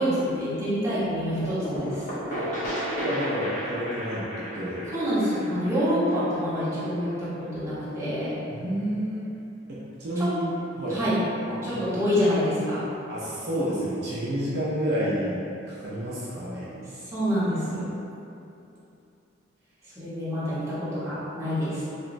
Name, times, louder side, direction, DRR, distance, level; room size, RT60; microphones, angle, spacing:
voice 1, 0.0-2.1 4.9-8.4 10.2-10.3 10.9-11.2 11.6-12.8 17.1-17.9 19.9-21.8, equal, 15° right, -12 dB, 0.7 m, -27 dB
sound 1, 1.4-7.0, equal, 40° left, 0.5 m, -33 dB
voice 2, 3.0-4.8 8.5-9.3 9.7-11.0 11.7-11.9 13.1-15.4 15.7-16.7, equal, 55° right, -8 dB, 0.4 m, -29 dB
2.9 x 2.1 x 2.5 m, 2.8 s
head